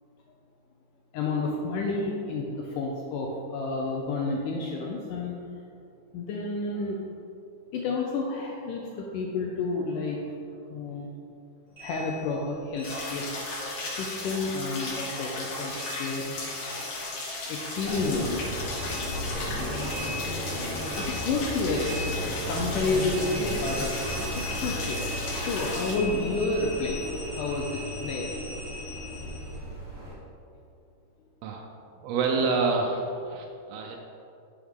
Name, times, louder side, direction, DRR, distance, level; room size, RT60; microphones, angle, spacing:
voice 1, 1.1-5.4 6.1-7.0 7.7-10.3 10.7-11.1 11.8-13.3 13.9-15.7 16.0-16.3 17.5-18.8 19.4-20.2 20.9-21.9 22.5-24.0 24.4-28.3, left 3 dB, 85° left, -1 dB, 1.8 m, -30 dB
sound 1, 11.8-14.5 14.7-17.5 17.7-29.5, left 1 dB, 60° right, 0.6 m, -41 dB
sound 2, 12.8-26.0, left 2 dB, 65° left, 2.0 m, -35 dB
sound 3, 17.8-30.1, equal, 40° right, 1.6 m, -35 dB
voice 2, 32.0-34.0, right 4 dB, 80° right, 1 dB, 2.5 m, -27 dB
8.8 x 6.1 x 3.6 m, 2.5 s
omnidirectional pair, 4.5 m